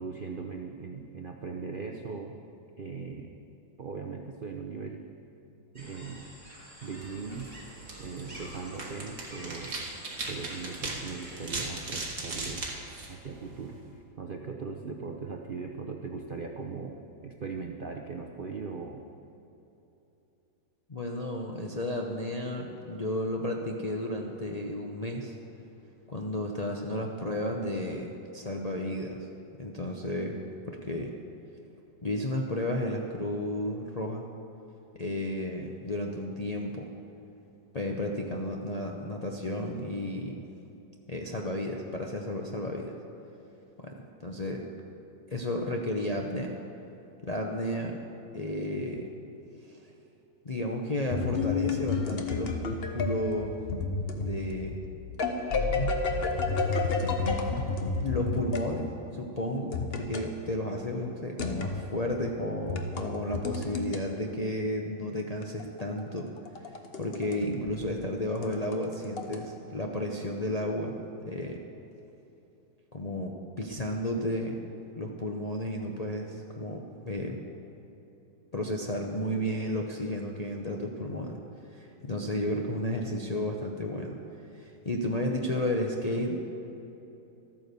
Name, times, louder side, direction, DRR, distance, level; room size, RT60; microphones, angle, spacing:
voice 1, 0.0-2.4 2.8-3.4 3.8-5.0 5.7-6.2 6.8-7.5 8.0-9.8 10.3-12.6 13.1-13.8 14.2-17.0 17.2-19.0 67.2-67.7, right 4 dB, 70° right, 2 dB, 0.5 m, -39 dB
sound 1, 5.8-11.7, right 1 dB, 20° right, 3.4 m, -49 dB
sound 2, 6.9-13.9, right 3 dB, 40° right, 1.8 m, -39 dB
voice 2, 20.9-25.3 26.1-28.1 28.3-29.2 29.6-30.4 30.7-31.1 32.0-34.2 34.9-36.9 37.7-40.4 41.1-42.9 43.8-43.9 44.2-44.6 45.3-46.5 47.2-48.0 48.3-49.1 49.6-49.8 50.4-53.6 54.2-54.8 57.6-57.7 58.0-66.3 66.7-71.0 71.3-71.6 72.9-74.6 75.0-77.5 78.5-81.4 81.7-84.2 84.5-86.4, left 1 dB, 60° left, 0 dB, 0.4 m, -32 dB
sound 3, 51.1-58.7 59.7-60.3 61.4-61.8 62.6-64.0 65.4-67.4 67.7-67.8 68.4-69.4, left 4 dB, 45° left, 0.8 m, -30 dB
13.5 x 9.2 x 6.8 m, 2.9 s
omnidirectional pair, 2.1 m